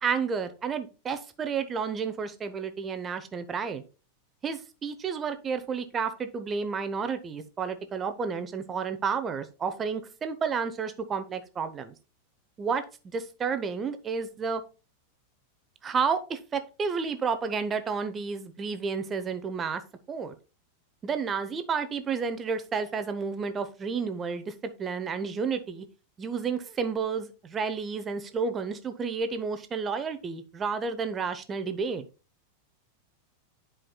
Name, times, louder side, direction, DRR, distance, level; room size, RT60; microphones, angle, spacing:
voice 1, 0.0-3.8 4.4-11.9 12.6-12.8 13.1-14.6 15.8-19.8 20.1-20.3 21.0-24.5 24.8-25.9 26.2-32.0, right 5 dB, 20° right, 9 dB, 0.9 m, -31 dB
10.5 x 5.0 x 2.3 m, 0.33 s
figure-of-eight pair, 90°, 0 cm